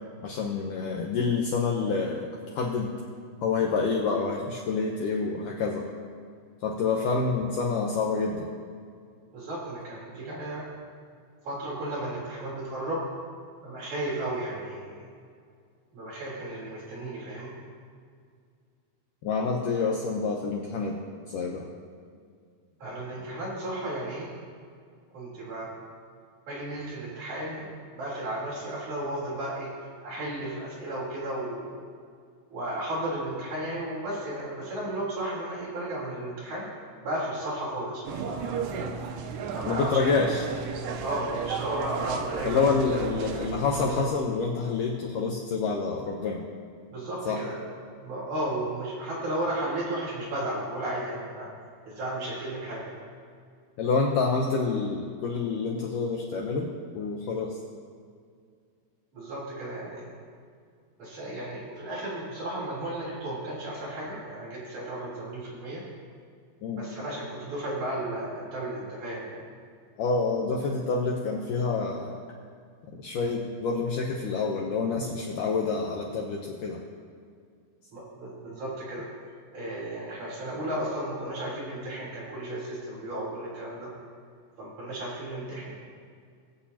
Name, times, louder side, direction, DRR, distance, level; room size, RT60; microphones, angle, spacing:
voice 1, 0.2-2.3 2.6-2.9 3.4-5.8 6.6-8.5 19.2-21.0 21.3-21.7 39.7-40.5 42.4-46.4 47.2-47.4 53.8-57.6 66.6-66.8 70.0-72.2 72.9-76.8, left 4 dB, 90° left, -1 dB, 1.8 m, -27 dB
voice 2, 9.3-10.6 11.4-13.0 13.6-15.1 15.9-17.5 22.8-24.3 25.1-25.7 26.5-29.7 30.0-31.8 32.5-36.7 37.0-38.7 39.5-40.0 41.0-42.7 46.9-47.6 48.0-51.5 51.8-53.0 59.1-60.2 61.0-65.8 66.7-69.4 77.9-79.1 79.5-83.9 84.6-85.8, right 1 dB, 50° right, -7 dB, 4.8 m, -34 dB
sound 1, 38.1-44.1, right 6 dB, 80° right, 2.7 m, -34 dB
21.5 x 8.8 x 2.8 m, 2.2 s
omnidirectional pair, 4.9 m